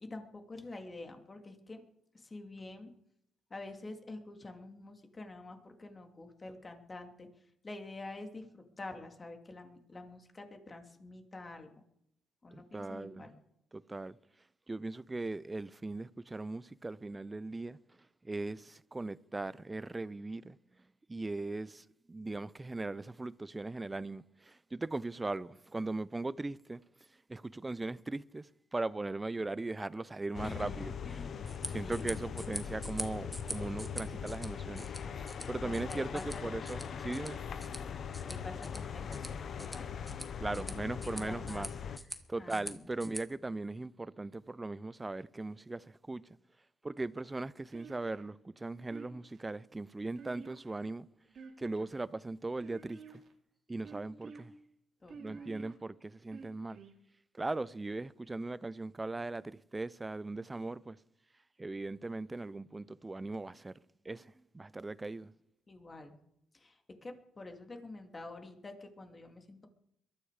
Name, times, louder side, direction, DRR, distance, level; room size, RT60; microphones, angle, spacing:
voice 1, 0.0-1.8 2.1-2.9 3.5-7.3 7.6-11.8 12.4-13.4 30.4-32.1 35.6-36.5 38.3-40.2 40.5-41.7 42.3-42.9 55.0-55.6 65.7-66.2 66.5-69.7, left 2 dB, 30° left, 2.7 m, -48 dB
voice 2, 12.5-13.2 13.7-14.2 14.7-17.8 18.2-20.6 21.1-26.8 27.3-31.0 31.7-37.4 40.4-41.7 42.3-46.3 46.8-51.1 51.6-53.0 53.7-54.5 55.2-56.8 57.3-61.0 61.6-63.8 64.0-65.3, right 2 dB, 20° right, 0.6 m, -39 dB
sound 1, 30.3-42.0, left 7 dB, 55° left, 1.0 m, -41 dB
sound 2, 31.4-43.2, equal, 5° left, 1.9 m, -46 dB
sound 3, 47.7-48.3 48.9-49.4 50.2-50.9 51.3-52.0 52.6-53.3 53.8-54.4 55.1-55.7 56.3-57.0, right 5 dB, 60° right, 2.6 m, -50 dB
22.0 x 13.5 x 5.0 m
cardioid pair, 90°, 0 cm